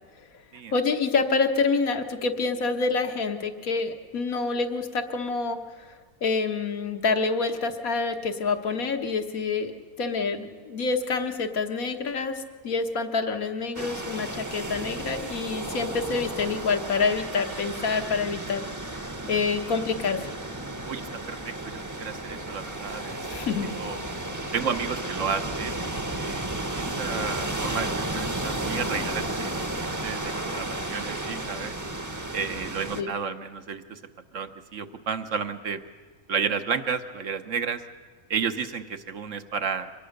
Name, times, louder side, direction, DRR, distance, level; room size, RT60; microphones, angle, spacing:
voice 1, 0.7-6.0 6.2-9.7 10.0-18.7 18.9-20.3 23.3-23.7 32.9-33.1, left 4 dB, 70° left, 5 dB, 1.7 m, -27 dB
sound 1, 13.8-33.0, right 1 dB, 15° right, 0.9 m, -33 dB
voice 2, 20.8-23.2 23.8-24.0 24.5-26.4 26.7-31.7 32.3-34.0 34.3-35.8 36.3-37.8 38.3-39.9, right 6 dB, 60° right, 8 dB, 1.2 m, -32 dB
24.5 x 19.0 x 6.5 m, 1.5 s
omnidirectional pair, 1.5 m